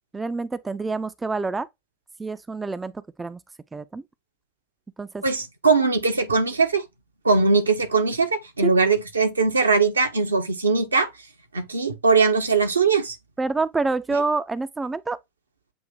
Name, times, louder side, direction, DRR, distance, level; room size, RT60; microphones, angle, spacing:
voice 1, 0.1-1.7 2.2-3.4 3.7-4.0 5.0-5.2 8.6-8.7 13.4-15.2, right 3 dB, 15° right, 0.4 m, -27 dB
voice 2, 5.2-6.8 7.2-11.1 11.5-13.2, right 4 dB, 80° right, 0.9 m, -20 dB
7.9 x 2.7 x 2.3 m
figure-of-eight pair, 80°, 0 cm